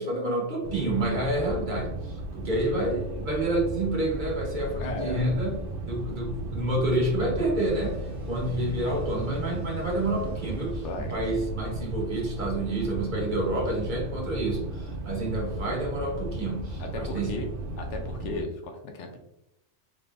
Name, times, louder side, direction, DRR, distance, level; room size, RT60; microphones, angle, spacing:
voice 1, 0.0-5.6 5.9-8.0 8.2-10.8 11.1-17.4, right 1 dB, 45° right, -2 dB, 1.2 m, -28 dB
sound 1, 0.6-18.4, right 2 dB, 60° right, 0.7 m, -35 dB
voice 2, 4.8-5.2 10.8-11.1 16.8-17.5 17.8-19.2, left 2 dB, 80° left, 4 dB, 1.0 m, -35 dB
sound 2, 7.6-12.0, left 5 dB, 30° left, 1.3 m, -46 dB
3.7 x 3.3 x 2.5 m, 0.84 s
omnidirectional pair, 1.2 m